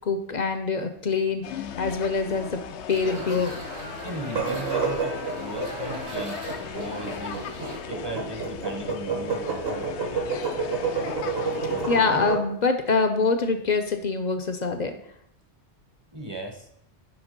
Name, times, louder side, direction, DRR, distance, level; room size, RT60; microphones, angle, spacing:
voice 1, 0.1-2.6 2.9-3.5 11.9-15.0, left 4 dB, 50° left, 8 dB, 0.6 m, -25 dB
sound 1, 1.4-12.0, left 7 dB, 80° left, 0.9 m, -37 dB
sound 2, 2.9-7.8, right 1 dB, 85° right, 1.9 m, -39 dB
voice 2, 4.0-6.4 6.7-7.4 7.9-9.9 16.1-16.7, right 1 dB, 25° right, 3 dB, 0.8 m, -37 dB
sound 3, 4.2-12.4, right 4 dB, 65° right, 1.7 m, -29 dB
9.9 x 3.5 x 5.1 m, 0.73 s
omnidirectional pair, 1.1 m